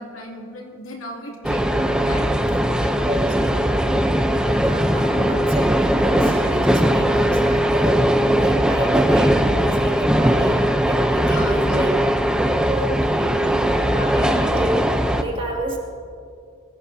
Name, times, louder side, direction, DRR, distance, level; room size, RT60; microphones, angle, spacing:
voice 1, 0.0-2.3 2.8-3.6 11.3-12.1, left 1 dB, 80° left, 0 dB, 2.6 m, -35 dB
sound 1, 1.4-15.2, equal, 5° right, 0.6 m, -19 dB
voice 2, 3.0-3.6 4.3-8.0 8.4-11.9 12.5-15.8, right 1 dB, 25° right, -2 dB, 2.5 m, -29 dB
23.0 x 16.5 x 2.8 m, 2.3 s
head